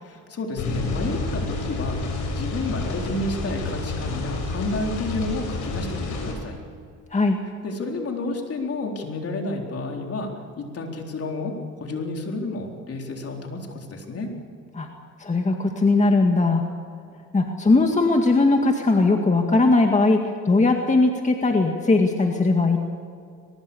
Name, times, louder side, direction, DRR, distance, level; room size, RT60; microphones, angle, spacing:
voice 1, 0.0-6.6 7.6-10.3 10.6-11.5 11.8-14.3, left 2 dB, 50° left, 1 dB, 4.0 m, -30 dB
sound 1, 0.6-6.3, left 3 dB, 80° left, 6.3 m, -29 dB
voice 2, 15.2-16.6 17.3-20.2 20.5-22.8, left 3 dB, 25° left, 3 dB, 2.0 m, -19 dB
22.5 x 21.0 x 7.1 m, 2.3 s
cardioid pair, 90°, 30 cm